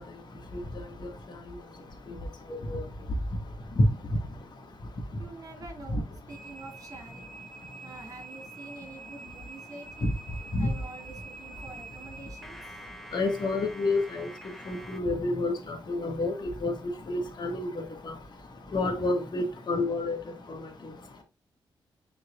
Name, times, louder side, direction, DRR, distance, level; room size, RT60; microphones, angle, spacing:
voice 1, 5.2-7.3 7.8-10.1 10.6-12.8, right 3 dB, 40° right, 1 dB, 4.1 m, -47 dB
sound 1, 6.3-15.0, right 3 dB, ahead, 1.1 m, -46 dB
voice 2, 13.1-14.3 14.7-16.7 17.1-17.7 18.0-18.1 18.7-20.2, left 2 dB, 55° left, 3 dB, 2.1 m, -28 dB
10.0 x 4.8 x 2.5 m, 0.25 s
wide cardioid pair, 120°, 9 cm